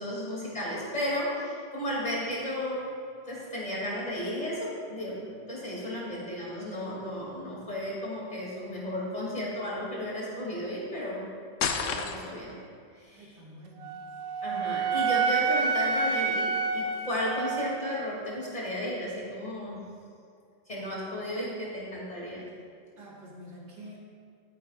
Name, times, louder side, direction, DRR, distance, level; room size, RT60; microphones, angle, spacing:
voice 1, 0.0-2.9 3.3-11.2 11.8-12.5 13.0-13.3 14.4-19.9 20.7-22.4, left 1 dB, 20° left, -5 dB, 2.9 m, -34 dB
sound 1, 11.6-12.5, left 6 dB, 75° left, 0.7 m, -30 dB
voice 2, 13.1-14.1 23.0-24.0, equal, 55° right, -4 dB, 2.7 m, -48 dB
Wind instrument woodwind instrument, 13.8-18.0, right 4 dB, 75° right, 1.3 m, -28 dB
13.0 x 10.5 x 2.5 m, 2.3 s
omnidirectional pair, 2.1 m